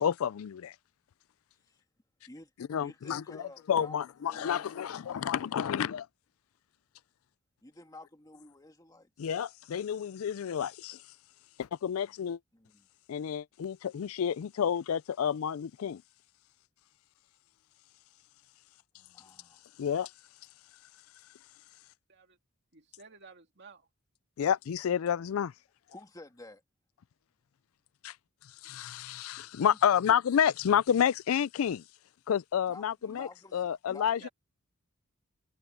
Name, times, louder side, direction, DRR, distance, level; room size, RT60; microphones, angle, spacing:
voice 1, 0.0-0.7 2.7-3.4 3.7-6.1 9.2-11.0 11.6-12.4 13.1-16.0 19.8-20.1 24.4-25.5 28.0-28.2 28.6-31.8 32.3-34.3, left 8 dB, 80° left, 0.4 m, -30 dB
voice 2, 2.8-5.3 7.6-9.1 12.5-12.9 19.1-19.6 25.9-26.6 29.6-30.2 32.7-34.3, left 2 dB, 20° left, 2.1 m, -51 dB
voice 3, 22.7-23.9 34.0-34.3, right 4 dB, 55° right, 2.6 m, -53 dB
head